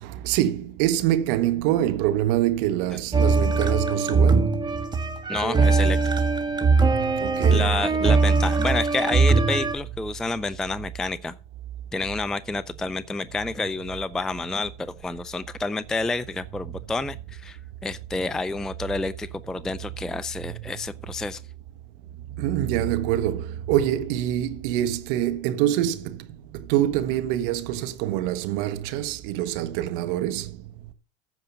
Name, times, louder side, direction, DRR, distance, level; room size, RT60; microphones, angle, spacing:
voice 1, 0.0-4.6 7.2-7.7 22.3-26.3 26.5-30.5, right 12 dB, 60° right, 1.5 m, -25 dB
sound 1, 3.1-9.8, right 4 dB, 15° right, 1.5 m, -21 dB
voice 2, 5.3-6.1 7.5-11.3 11.9-21.4, left 3 dB, ahead, 0.4 m, -29 dB
14.5 x 5.1 x 5.5 m
hypercardioid pair, 110°, 30 cm